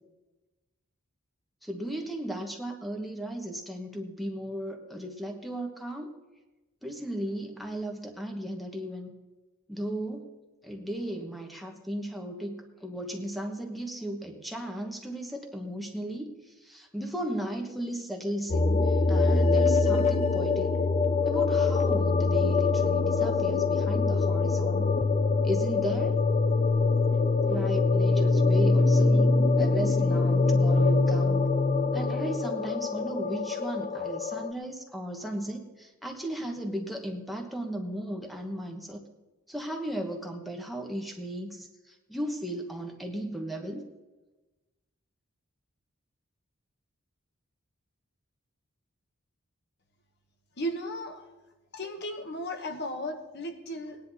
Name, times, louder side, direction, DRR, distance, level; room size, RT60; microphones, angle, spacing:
voice 1, 1.6-6.2 6.8-9.1 9.7-10.3 10.6-20.8 21.2-24.9 25.4-26.2 27.5-31.5 31.9-39.0 39.5-43.8, right 1 dB, ahead, 2 dB, 1.2 m, -36 dB
sound 1, 18.5-34.5, left 3 dB, 30° left, 0.5 m, -24 dB
voice 2, 50.6-51.3 51.7-54.0, equal, 50° left, 5 dB, 1.2 m, -35 dB
18.5 x 10.5 x 4.2 m, 1.1 s
head